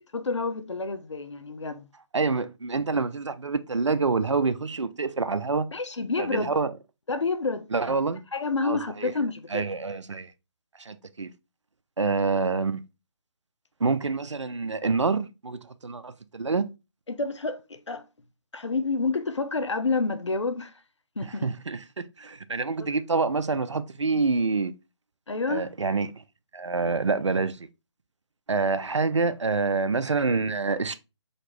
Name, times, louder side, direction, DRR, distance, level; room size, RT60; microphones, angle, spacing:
voice 1, 0.1-1.9 5.7-6.5 7.1-8.0 8.3-9.6 17.1-18.0 18.5-20.7 21.2-21.5 22.8-22.9 25.3-25.7, left 3 dB, 75° left, 0.7 m, -29 dB
voice 2, 2.1-5.7 6.2-6.7 7.7-8.2 8.6-9.1 9.5-10.3 10.8-11.3 12.0-12.8 13.8-16.7 21.4-24.7 25.5-26.1 26.5-27.7 28.5-30.9, right 4 dB, 80° right, 0.5 m, -27 dB
4.1 x 2.8 x 3.2 m
figure-of-eight pair, 150°, 15 cm